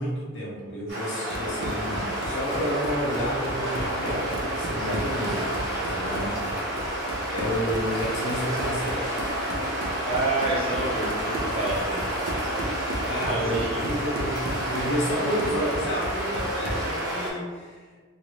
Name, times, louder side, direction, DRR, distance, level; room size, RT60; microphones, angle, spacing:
voice 1, 0.0-7.0 7.3-9.2 13.0-17.8, equal, 60° left, -4 dB, 0.8 m, -31 dB
sound 1, 0.9-17.3, right 1 dB, 60° right, 1.1 m, -30 dB
Run, 1.1-16.9, right 1 dB, 80° right, 0.6 m, -35 dB
voice 2, 10.1-12.0 13.2-13.8, right 2 dB, 30° right, -5 dB, 0.7 m, -29 dB
3.0 x 2.6 x 2.9 m, 1.5 s
head